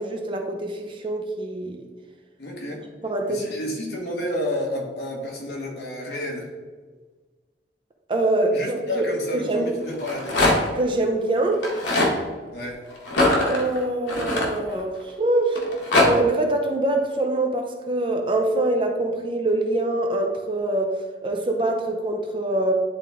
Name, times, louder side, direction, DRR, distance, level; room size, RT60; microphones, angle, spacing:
voice 1, 0.0-1.8 3.0-3.5 8.1-9.0 9.3-9.7 10.7-11.7 13.4-15.6 16.0-22.7, right 2 dB, 30° right, 3 dB, 0.6 m, -24 dB
voice 2, 2.4-2.8 3.3-6.5 8.5-10.4 12.5-12.9, left 1 dB, 60° left, -1 dB, 1.5 m, -30 dB
Rattle, 9.9-10.8 11.5-12.1 13.1-15.0 15.6-16.1, left 2 dB, 80° left, 1.5 m, -21 dB
10.5 x 3.6 x 3.5 m, 1.4 s
head